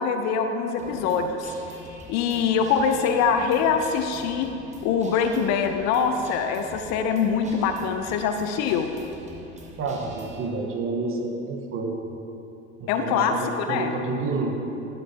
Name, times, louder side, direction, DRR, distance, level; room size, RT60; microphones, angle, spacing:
voice 1, 0.0-1.5 2.1-4.5 4.8-8.9 12.9-13.9, left 6 dB, 45° left, 7 dB, 0.6 m, -24 dB
Guitar, 0.8-10.5, right 1 dB, 20° right, 1.3 m, -44 dB
voice 2, 9.8-12.1 12.8-14.6, right 3 dB, 35° right, 2 dB, 1.3 m, -29 dB
11.5 x 8.4 x 2.8 m, 2.9 s
hypercardioid pair, 80°, 37 cm